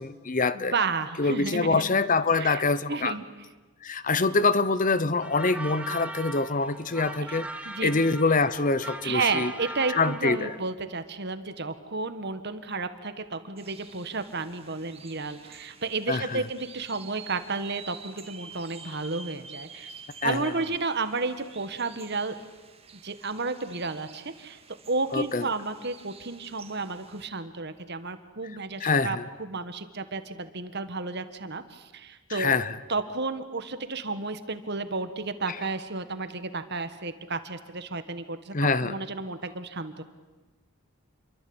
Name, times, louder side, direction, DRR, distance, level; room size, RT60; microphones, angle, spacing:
voice 1, 0.0-0.7 1.2-3.2 3.8-9.5 9.9-10.5 16.1-16.4 20.2-20.5 25.1-25.5 28.8-29.3 32.3-32.7 35.5-35.6 38.5-39.0, left 3 dB, 40° left, 16 dB, 0.9 m, -25 dB
voice 2, 0.5-1.9 2.3-2.6 2.9-3.2 7.2-7.3 7.6-7.9 9.0-19.9 20.2-22.4 23.0-24.6 24.9-32.6 32.9-38.5 38.8-40.0, right 3 dB, 55° right, 10 dB, 1.7 m, -32 dB
sound 1, 5.2-10.6, right 1 dB, 5° right, 1.5 m, -39 dB
sound 2, 13.6-27.3, right 5 dB, 30° right, 1.9 m, -49 dB
28.5 x 23.5 x 8.9 m, 1.2 s
head